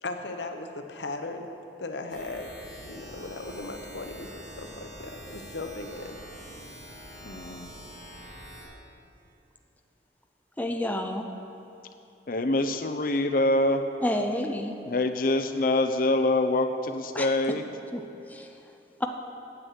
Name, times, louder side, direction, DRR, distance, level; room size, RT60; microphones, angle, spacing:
voice 1, 0.0-1.5 1.8-2.5 2.8-6.2, left 2 dB, 80° left, 6 dB, 0.9 m, -37 dB
sound 1, 2.1-8.6, equal, 40° right, 2.7 m, -45 dB
voice 2, 7.2-7.7 12.3-13.8 14.8-17.6, left 2 dB, 55° left, 7 dB, 0.7 m, -25 dB
voice 3, 10.6-11.2 14.0-14.7 17.1-17.3 17.9-18.0 18.3-18.5 19.0-19.1, left 1 dB, 10° left, 3 dB, 0.5 m, -29 dB
9.7 x 8.0 x 7.7 m, 2.8 s
head